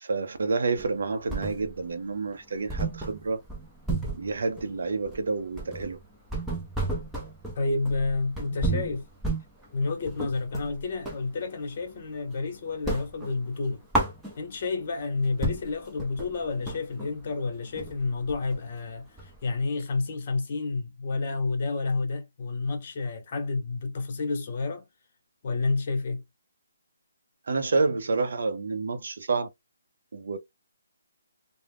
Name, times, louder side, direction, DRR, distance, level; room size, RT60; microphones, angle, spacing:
voice 1, 0.0-3.4 4.1-6.0 27.5-29.5 30.1-30.4, right 4 dB, 65° right, 0.5 m, -29 dB
sound 1, 0.8-1.9 2.3-2.4 2.7-11.3 11.7-12.4 12.7-14.7 15.1-15.2 15.4-19.6, right 2 dB, 5° right, 0.6 m, -33 dB
voice 2, 7.5-9.0 9.7-13.8 14.4-24.9 25.4-26.2, left 3 dB, 40° left, 0.9 m, -30 dB
2.3 x 2.0 x 3.4 m
hypercardioid pair, 165°, 0 cm